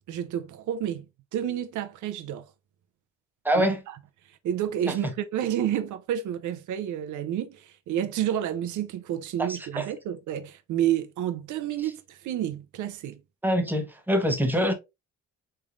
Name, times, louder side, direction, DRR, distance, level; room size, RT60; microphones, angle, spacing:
voice 1, 0.1-1.1 1.3-2.5 3.5-3.7 4.4-13.2, right 10 dB, 75° right, 0.7 m, -30 dB
voice 2, 3.4-3.8 4.9-5.1 9.4-9.9 13.4-14.7, equal, 5° right, 0.9 m, -25 dB
3.5 x 3.3 x 2.5 m
cardioid pair, 90°, 30 cm